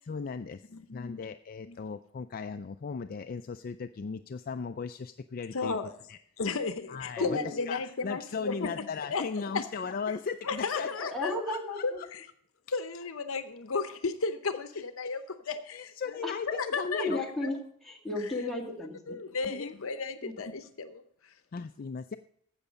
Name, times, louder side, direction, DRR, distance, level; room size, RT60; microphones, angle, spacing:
voice 1, 0.0-5.8 6.1-6.2 6.9-12.1 14.7-15.2 15.4-17.2 19.4-19.8 21.5-22.2, left 5 dB, 40° left, 9 dB, 0.4 m, -37 dB
voice 2, 0.7-1.2 1.6-1.8 5.5-5.9 6.4-9.6 10.4-11.3 11.8-12.2 12.7-15.9 16.5-17.5 19.1-21.3, left 4 dB, 65° left, 10 dB, 0.8 m, -34 dB
voice 3, 7.2-7.6 11.0-12.0 16.2-16.3 17.0-17.6 17.8-19.2 20.2-20.3, left 2 dB, ahead, -2 dB, 2.1 m, -34 dB
12.5 x 8.2 x 5.1 m, 0.65 s
head